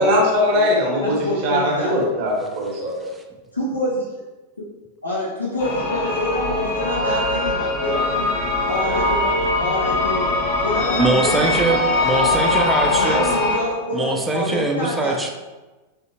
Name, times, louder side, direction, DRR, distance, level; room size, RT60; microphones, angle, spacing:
voice 1, 0.0-3.1, left 1 dB, 45° right, 0.9 m, -20 dB
voice 2, 1.0-2.0 3.5-4.2 5.0-8.3 8.7-10.3 10.6-11.5 12.0-12.4 12.9-15.2, left 1 dB, 85° left, 0.6 m, -27 dB
sound 1, 5.6-13.6, left 2 dB, 40° left, 0.8 m, -21 dB
voice 3, 11.0-13.3 13.9-15.3, right 3 dB, 10° right, 0.4 m, -22 dB
3.3 x 2.6 x 2.7 m
figure-of-eight pair, 90°, 0 cm